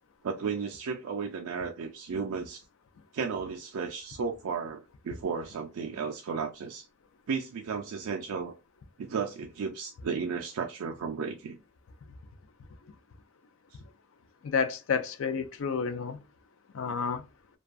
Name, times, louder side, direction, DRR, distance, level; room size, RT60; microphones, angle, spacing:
voice 1, 0.2-2.6 3.1-6.9 7.3-8.6 9.0-11.6, right 5 dB, 85° right, 0.4 m, -34 dB
voice 2, 14.4-16.2 16.7-17.2, left 6 dB, 65° left, 0.4 m, -30 dB
2.5 x 2.3 x 2.3 m
head